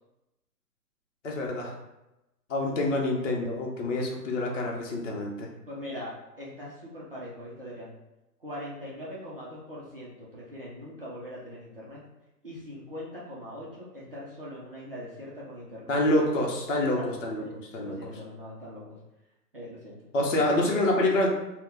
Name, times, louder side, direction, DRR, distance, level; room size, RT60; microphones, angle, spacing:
voice 1, 1.2-1.8 2.5-5.5 15.9-17.9 20.1-21.3, left 1 dB, 50° left, -1 dB, 0.8 m, -27 dB
voice 2, 5.7-7.9 8.4-12.0 12.4-16.0 16.8-17.1 17.4-19.0 19.5-20.0, equal, 35° right, -7 dB, 0.5 m, -41 dB
2.7 x 2.2 x 3.6 m, 0.95 s
hypercardioid pair, 155°, 49 cm